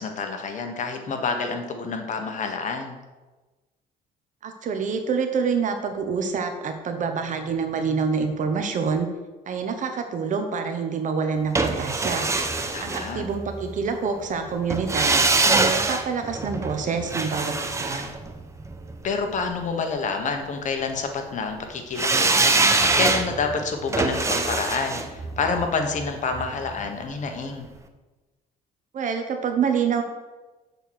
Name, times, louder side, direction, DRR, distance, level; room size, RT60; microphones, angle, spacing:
voice 1, 0.0-3.0 12.7-13.2 19.0-27.7, left 4 dB, 45° left, 5 dB, 1.2 m, -28 dB
voice 2, 4.4-9.1 9.5-12.3 12.8-15.2 15.6-18.1 28.9-30.0, right 5 dB, 50° right, 6 dB, 0.9 m, -26 dB
sound 1, 11.6-13.7 14.7-19.0 22.0-27.0 27.3-27.4, right 3 dB, 15° right, 0.7 m, -24 dB
6.7 x 4.4 x 6.4 m, 1.2 s
cardioid pair, 110°, 17 cm